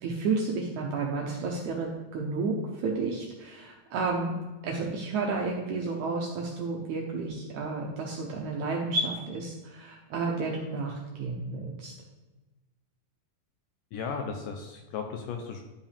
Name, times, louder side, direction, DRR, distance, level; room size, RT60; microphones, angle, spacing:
voice 1, 0.0-4.3 4.6-11.9, right 3 dB, 75° right, -1 dB, 1.8 m, -31 dB
voice 2, 13.9-15.6, left 5 dB, 80° left, 4 dB, 2.0 m, -35 dB
12.0 x 5.1 x 3.4 m, 1.2 s
omnidirectional pair, 4.3 m